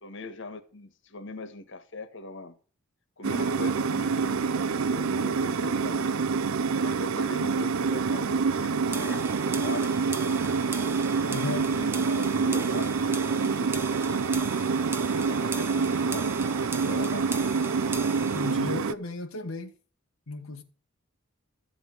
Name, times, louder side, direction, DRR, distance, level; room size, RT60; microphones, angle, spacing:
voice 1, 0.0-2.6 3.2-6.2 6.8-10.0 11.1-14.4 15.1-16.4 16.8-17.5, left 2 dB, 60° left, 1.6 m, -41 dB
sound 1, 3.2-18.9, right 5 dB, 85° right, 0.6 m, -27 dB
sound 2, 8.9-18.5, right 3 dB, 10° right, 0.9 m, -39 dB
voice 2, 11.3-11.7 18.3-19.7 20.3-20.6, left 3 dB, 85° left, 1.2 m, -34 dB
13.5 x 5.4 x 9.2 m
head